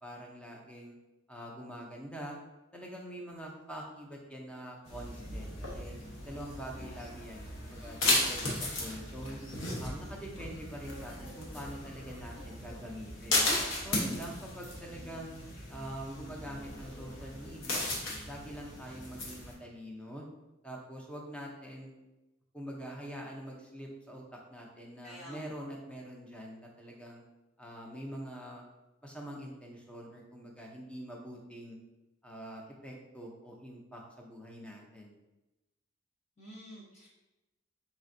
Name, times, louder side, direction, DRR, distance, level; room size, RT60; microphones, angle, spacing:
voice 1, 0.0-0.9 1.3-2.4 2.7-6.0 6.2-9.4 9.8-13.5 13.8-15.3 15.7-17.9 18.3-20.3 20.6-21.9 22.5-27.2 27.6-28.6 29.0-31.8 32.2-35.1, equal, 5° left, -1 dB, 0.6 m, -44 dB
sound 1, 4.9-19.5, left 1 dB, 70° left, 0.9 m, -36 dB
voice 2, 25.0-25.5 36.4-37.1, equal, 35° left, -6 dB, 0.8 m, -48 dB
4.2 x 3.3 x 2.6 m, 1.0 s
head